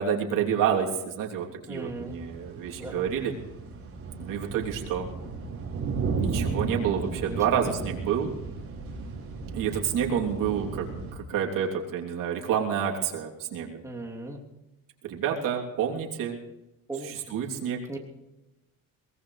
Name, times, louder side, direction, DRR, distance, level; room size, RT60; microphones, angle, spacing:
voice 1, 0.0-3.3 4.2-5.1 6.2-8.3 9.5-10.9 11.1-13.8 15.0-16.4 17.0-17.8, right 8 dB, 70° right, -1 dB, 3.2 m, -28 dB
voice 2, 1.7-2.2 2.8-3.0 7.2-7.4 7.6-7.7 13.8-14.4 16.9-17.4 17.9-18.0, right 2 dB, 10° right, -1 dB, 3.1 m, -37 dB
sound 1, 1.7-11.1, right 4 dB, 40° right, 5.1 m, -34 dB
22.5 x 18.5 x 3.3 m, 0.98 s
cardioid pair, 105°, 34 cm